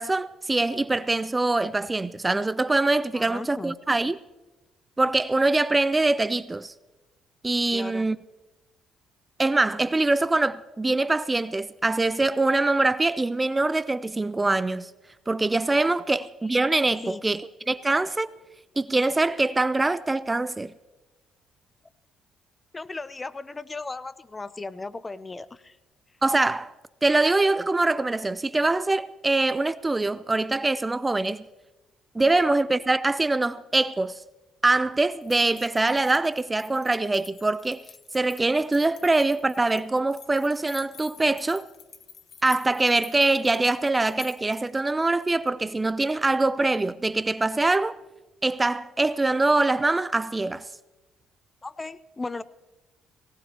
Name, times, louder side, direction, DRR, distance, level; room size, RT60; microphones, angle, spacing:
voice 1, 0.0-4.2 5.0-6.7 7.4-8.2 9.4-14.9 15.3-18.3 18.8-20.7 26.2-26.7 27.0-31.4 32.1-34.2 34.6-37.8 38.1-41.7 42.4-48.0 48.4-50.6, right 2 dB, 20° right, 0.4 m, -23 dB
voice 2, 3.1-3.8 7.7-8.1 16.1-16.2 17.0-17.2 22.7-25.8 32.3-32.4 51.6-52.4, left 3 dB, 25° left, 0.6 m, -36 dB
sound 1, 35.2-44.8, left 7 dB, 55° left, 0.9 m, -48 dB
18.5 x 18.0 x 2.9 m
hypercardioid pair, 60°, 0 cm